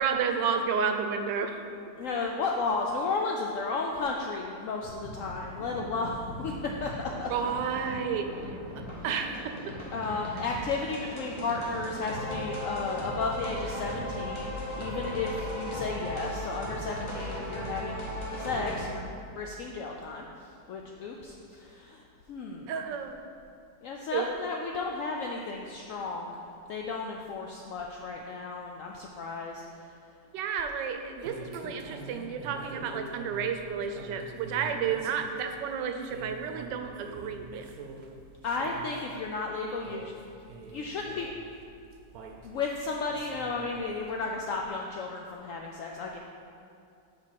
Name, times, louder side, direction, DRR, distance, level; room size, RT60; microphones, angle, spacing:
voice 1, 0.0-1.6 7.3-8.3 9.0-9.7 22.7-23.2 24.1-24.3 30.3-37.6, right 6 dB, 80° right, 6 dB, 1.3 m, -31 dB
voice 2, 2.0-6.9 7.2-7.3 9.9-18.0 18.4-19.0 19.3-20.3 20.7-22.7 23.8-26.3 26.7-29.6 38.4-41.3 42.4-46.2, left 4 dB, 85° left, 0 dB, 0.7 m, -33 dB
sound 1, 4.8-18.8, equal, 20° left, 0.8 m, -38 dB
sound 2, 30.6-44.2, right 3 dB, 65° right, 1.0 m, -46 dB
5.2 x 5.2 x 5.8 m, 2.6 s
omnidirectional pair, 1.9 m